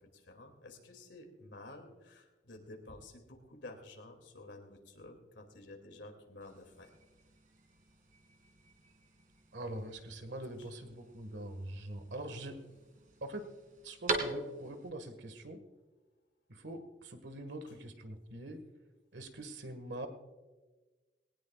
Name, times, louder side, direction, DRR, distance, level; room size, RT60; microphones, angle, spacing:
voice 1, 0.0-6.9 10.6-10.7, left 2 dB, 90° left, 4 dB, 2.5 m, -52 dB
sound 1, 6.4-14.9, right 3 dB, 45° right, 2.3 m, -44 dB
voice 2, 9.5-12.6 13.2-13.5 13.8-15.6 16.5-18.6 19.1-20.1, right 1 dB, 80° right, 8 dB, 1.7 m, -43 dB
20.5 x 18.5 x 2.4 m, 1.3 s
head